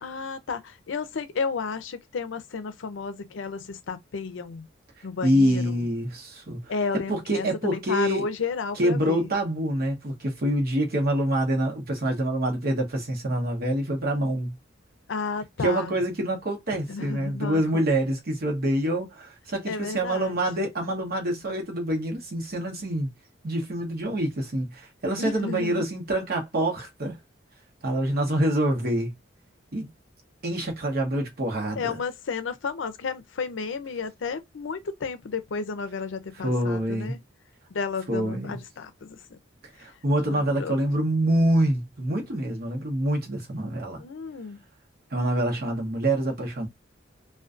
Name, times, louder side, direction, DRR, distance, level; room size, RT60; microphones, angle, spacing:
voice 1, 0.0-4.7 5.0-5.8 6.7-9.3 15.1-15.9 16.9-17.8 19.7-20.4 25.2-25.8 31.8-37.2 37.7-39.2 40.3-40.8 44.0-44.6, left 5 dB, 75° left, 0.5 m, -32 dB
voice 2, 5.2-8.3 8.7-14.5 15.6-23.1 23.4-27.2 27.8-29.1 29.7-29.9 30.4-32.0 36.4-37.2 38.1-38.6 39.8-44.0 45.1-46.7, right 1 dB, 55° right, 0.9 m, -26 dB
2.5 x 2.2 x 2.4 m
head